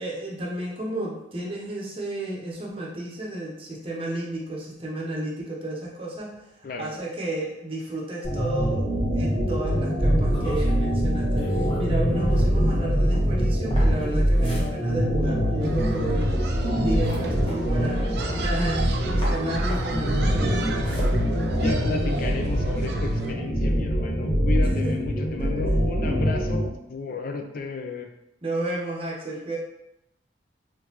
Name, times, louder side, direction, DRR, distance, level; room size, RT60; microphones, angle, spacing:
voice 1, 0.0-16.3 16.7-20.8 24.6-24.9 25.4-25.5 28.4-29.6, right 1 dB, 30° right, -3 dB, 0.8 m, -32 dB
sound 1, 8.2-26.7, equal, 80° left, 1.3 m, -23 dB
sound 2, 10.3-18.9 19.2-22.1, left 1 dB, 25° left, 1.1 m, -41 dB
sound 3, 15.6-23.3, right 4 dB, 55° right, 0.4 m, -37 dB
voice 2, 21.5-28.1, left 3 dB, 50° left, 4 dB, 0.5 m, -33 dB
3.9 x 3.2 x 2.9 m, 0.85 s
head